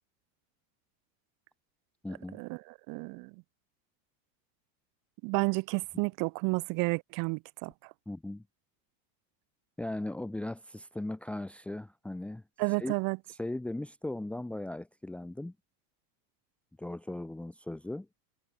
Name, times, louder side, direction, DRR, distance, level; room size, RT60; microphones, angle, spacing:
voice 1, 2.0-2.4 8.1-8.4 9.8-12.4 12.8-12.9 13.3-15.5 16.8-18.1, left 1 dB, ahead, 1.3 m, -38 dB
voice 2, 2.9-3.3 5.2-7.9 12.6-13.2, right 30 dB, 40° right, 3.3 m, -31 dB
supercardioid pair, 180°, 50 cm